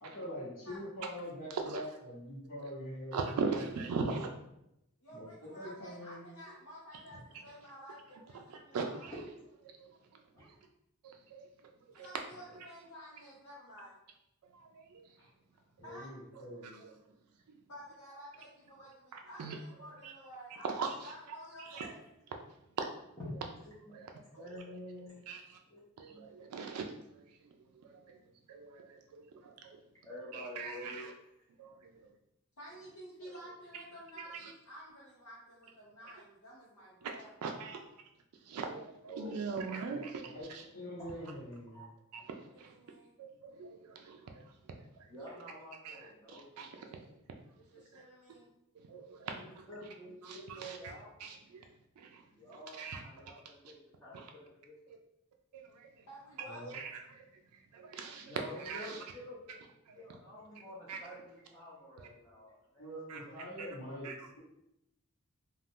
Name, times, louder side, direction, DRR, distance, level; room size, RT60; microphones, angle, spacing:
voice 1, 0.0-3.7 4.0-4.2 5.1-5.2 5.5-6.2 15.8-16.8 39.9-40.5 40.7-41.8 56.5-56.7 62.8-64.4, equal, 60° left, -9 dB, 1.1 m, -44 dB
voice 2, 3.1-4.3 8.7-9.1 11.3-11.4 11.9-12.1 14.5-15.0 19.4-19.5 20.0-20.1 20.7-20.9 21.6-21.9 22.8-22.9 23.9-24.1 25.3-25.4 26.0-26.9 27.8-28.2 28.5-29.8 30.3-31.1 31.6-31.7 34.4-34.5 37.0-37.1 37.4-37.8 38.5-40.2 42.1-42.7 43.2-43.3 43.5-44.4 44.7-45.1 45.8-46.0 46.3-47.0 47.9-48.0 48.9-49.3 50.2-50.8 51.2-51.7 52.0-52.2 52.8-53.3 54.1-54.3 54.9-55.0 55.5-55.9 56.7-57.0 57.7-59.0 59.9-60.0 60.9-61.0 62.0-62.1 63.1-63.2 63.6-63.7 64.0-64.1, right 4 dB, 90° right, 3 dB, 0.4 m, -40 dB
voice 3, 5.0-9.0 11.9-14.0 15.8-16.1 17.7-22.0 32.6-37.9 42.5-43.2 47.6-48.5 56.1-56.8 60.1-60.3 62.0-62.3, equal, 90° left, -8 dB, 0.8 m, -52 dB
voice 4, 23.2-23.9 24.4-25.2 25.7-25.8 26.1-26.3 30.0-31.1 39.1-39.6 41.0-41.1 41.7-41.9 44.2-44.3 45.1-46.9 49.3-51.1 52.3-54.7 58.2-62.9, equal, 15° left, -8 dB, 0.6 m, -48 dB
2.4 x 2.4 x 3.4 m, 0.81 s
head